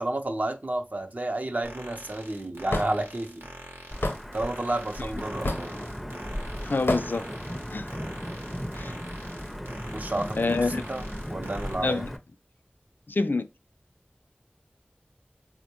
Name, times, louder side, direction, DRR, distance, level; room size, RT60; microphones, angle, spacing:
voice 1, 0.0-3.5 4.3-5.7 9.9-11.0 11.3-12.1, right 1 dB, 45° right, 0.5 m, -31 dB
sound 1, 1.6-11.8, right 1 dB, 85° right, 0.8 m, -45 dB
Hammer / Wood, 2.7-2.9 4.0-4.2 5.4-5.7 6.9-7.1, left 2 dB, 85° left, 0.7 m, -26 dB
Wind / Thunder / Rain, 3.9-12.2, equal, ahead, 0.5 m, -36 dB
voice 2, 6.6-7.3 7.7-8.0 8.7-9.0 10.4-10.8 11.8-12.1 13.1-13.5, left 3 dB, 65° left, 0.3 m, -27 dB
4.3 x 2.1 x 2.8 m
wide cardioid pair, 40°, 4 cm